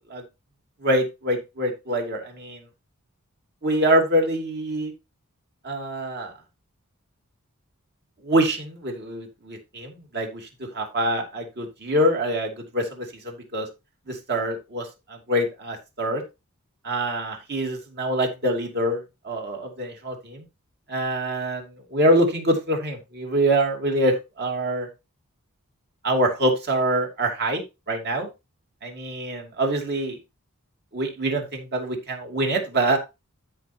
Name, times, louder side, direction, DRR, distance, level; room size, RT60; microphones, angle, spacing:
voice 1, 0.8-2.6 3.6-4.9 5.6-6.3 8.2-13.7 14.1-14.9 15.3-16.2 16.8-20.4 20.9-24.9 26.0-28.3 28.8-30.2 30.9-33.0, right 1 dB, 50° right, 2 dB, 2.8 m, -25 dB
13.0 x 5.8 x 2.9 m, 0.25 s
head